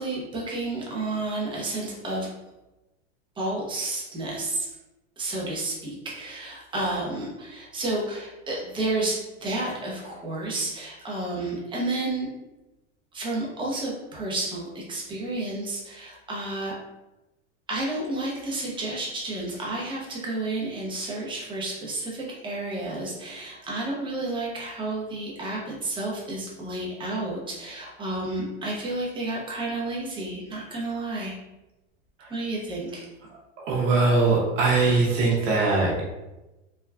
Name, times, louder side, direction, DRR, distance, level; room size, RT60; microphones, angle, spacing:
voice 1, 0.0-2.3 3.4-4.7 5.2-12.3 13.1-16.7 17.7-31.4 32.3-33.1, right 2 dB, 15° right, -3 dB, 0.6 m, -31 dB
voice 2, 33.6-36.0, right 3 dB, 80° right, -3 dB, 0.9 m, -21 dB
3.4 x 2.2 x 2.2 m, 1.0 s
supercardioid pair, 125°, 37 cm